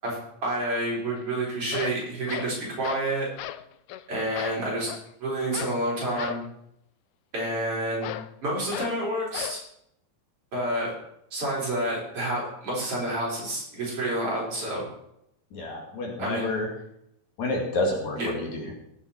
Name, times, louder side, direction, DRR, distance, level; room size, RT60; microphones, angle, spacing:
voice 1, 0.4-3.3 4.1-4.9 5.2-6.4 7.3-8.1 8.4-9.6 10.5-10.9 11.3-14.8 16.2-16.5 18.2-18.3, right 1 dB, 45° right, -5 dB, 5.5 m, -29 dB
sound 1, 1.2-1.3 1.6-3.1 3.4-3.6 3.9-4.0 4.3-5.1 5.5-5.8 6.1-6.5 8.0-8.3 8.7-9.0 9.3-9.6, left 12 dB, 85° left, 1.6 m, -36 dB
voice 2, 15.5-16.7 17.4-18.7, left 2 dB, 60° left, 0 dB, 3.5 m, -29 dB
18.0 x 7.7 x 4.4 m, 0.77 s
omnidirectional pair, 3.8 m